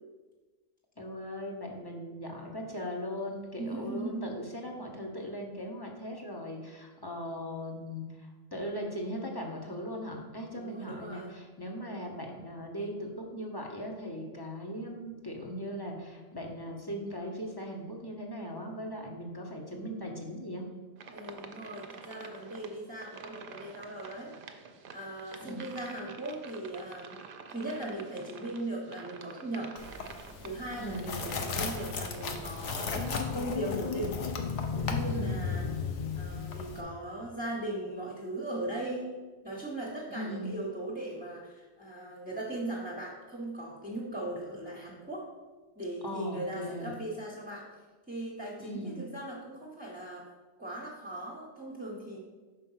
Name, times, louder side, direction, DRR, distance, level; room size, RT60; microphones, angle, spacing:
voice 1, 1.0-20.7 25.4-25.8 30.7-31.2 35.1-35.3 40.1-40.5 46.0-47.0 48.6-49.0, equal, 25° left, 0 dB, 0.8 m, -39 dB
voice 2, 3.6-4.4 10.5-11.4 21.1-24.3 24.9-27.2 27.5-29.7 30.4-34.1 34.7-35.7 36.2-45.3 45.8-47.7 48.1-50.3 50.6-52.3, right 1 dB, 10° right, -4 dB, 0.9 m, -38 dB
sound 1, 21.0-33.3, right 5 dB, 55° right, 0.7 m, -49 dB
sound 2, 29.8-36.8, left 4 dB, 85° left, 1.1 m, -38 dB
sound 3, 33.0-37.2, left 6 dB, 55° left, 0.5 m, -34 dB
5.7 x 4.5 x 5.6 m, 1.3 s
omnidirectional pair, 1.2 m